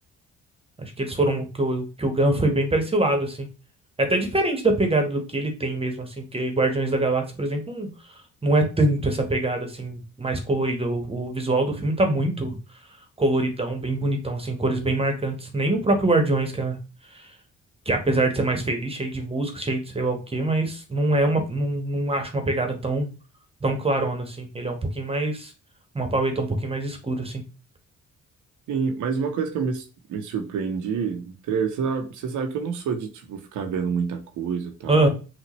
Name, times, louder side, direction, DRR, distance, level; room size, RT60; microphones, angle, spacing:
voice 1, 0.8-3.5 4.0-7.9 8.4-12.6 13.2-16.8 17.1-17.3 17.8-23.1 23.6-25.5 25.9-27.4 34.9-35.1, right 2 dB, 20° right, 5 dB, 1.2 m, -24 dB
voice 2, 28.7-29.8 30.1-35.1, right 6 dB, 80° right, 5 dB, 1.0 m, -28 dB
6.2 x 2.5 x 3.1 m, 0.33 s
cardioid pair, 90°, 30 cm